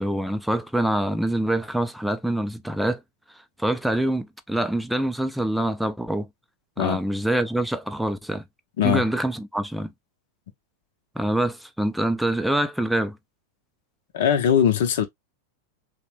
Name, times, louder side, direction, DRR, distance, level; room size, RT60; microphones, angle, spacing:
voice 1, 0.0-3.0 3.6-6.3 6.8-8.4 8.8-9.9 11.2-13.2, right 1 dB, ahead, 0.4 m, -25 dB
voice 2, 14.1-15.1, left 9 dB, 55° left, 0.6 m, -20 dB
3.2 x 2.1 x 2.9 m
figure-of-eight pair, 90°, 0 cm